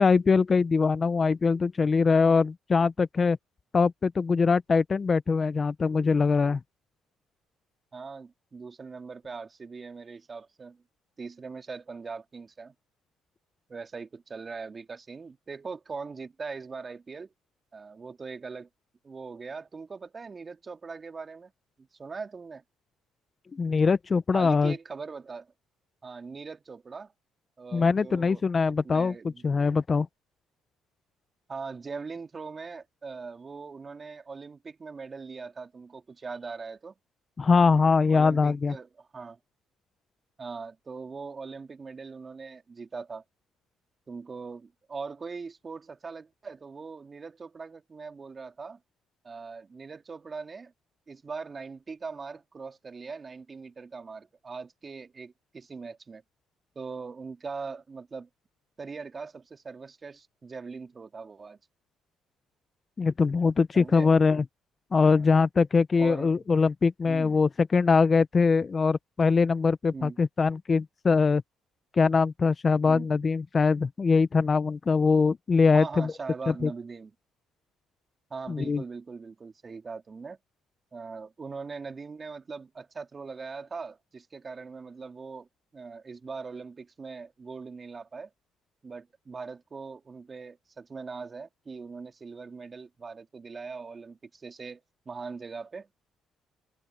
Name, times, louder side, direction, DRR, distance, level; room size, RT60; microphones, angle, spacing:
voice 1, 0.0-3.4 3.7-6.6 23.5-24.7 27.7-29.1 29.4-30.1 37.4-38.7 63.0-64.4 64.9-71.4 72.0-76.1 76.5-76.7 78.5-78.8, left 4 dB, 35° left, 0.9 m, -22 dB
voice 2, 7.9-10.8 11.2-12.7 13.7-17.3 17.7-18.7 19.0-21.5 21.8-22.6 24.3-25.5 26.0-27.1 27.6-29.5 31.5-36.9 38.1-39.4 40.4-43.2 44.1-48.8 49.2-50.7 51.1-56.2 56.7-58.3 58.8-61.6 63.7-64.1 64.9-65.3 66.0-66.3 67.1-67.4 69.9-70.2 72.8-73.1 75.7-77.1 78.3-80.4 80.9-85.5 85.7-88.3 88.8-94.8 95.1-95.9, right 4 dB, 35° right, 2.6 m, -41 dB
supercardioid pair, 65°, 0 cm